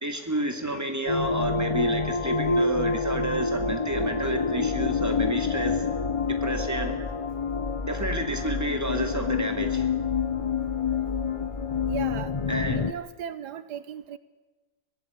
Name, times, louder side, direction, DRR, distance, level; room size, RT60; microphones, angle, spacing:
voice 1, 0.0-5.8 6.3-7.0 7.9-9.9 12.5-12.9, right 1 dB, 10° right, 5 dB, 2.4 m, -30 dB
sound 1, 1.1-12.9, left 4 dB, 35° left, 0.5 m, -27 dB
voice 2, 11.9-12.3 12.7-14.2, right 9 dB, 80° right, 14 dB, 1.5 m, -36 dB
24.0 x 18.0 x 8.4 m, 1.1 s
omnidirectional pair, 1.8 m